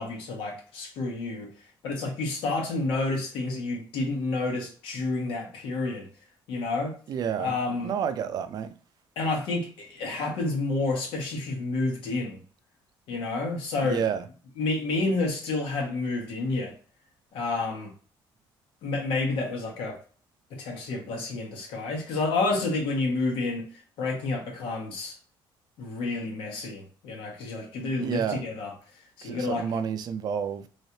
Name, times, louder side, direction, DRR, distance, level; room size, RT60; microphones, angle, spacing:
voice 1, 0.0-1.5 1.8-6.1 6.5-6.9 7.4-7.9 9.2-12.4 13.1-14.0 14.6-16.7 17.3-17.9 18.8-20.0 20.5-25.2 25.8-28.7 29.2-29.7, left 3 dB, 85° left, 1.1 m, -29 dB
voice 2, 7.1-7.5 7.8-8.7 13.8-14.2 28.0-28.4 29.2-30.7, right 7 dB, 50° right, 0.4 m, -29 dB
3.1 x 3.1 x 2.8 m
cardioid pair, 140°, 9 cm